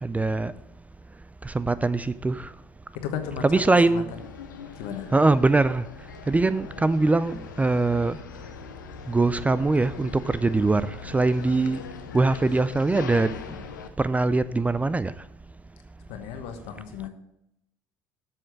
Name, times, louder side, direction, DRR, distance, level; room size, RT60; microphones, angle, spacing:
voice 1, 0.0-0.5 1.4-2.5 3.4-4.1 5.1-5.8 6.3-8.2 9.1-11.8 12.1-13.4 14.0-15.1, right 3 dB, 15° right, 0.4 m, -22 dB
voice 2, 2.9-3.6 3.9-4.2 4.8-5.1 16.1-17.1, left 8 dB, 70° left, 1.2 m, -35 dB
sound 1, 4.1-13.9, left 6 dB, 90° left, 0.7 m, -41 dB
7.8 x 6.2 x 6.4 m
hypercardioid pair, 65°, 10 cm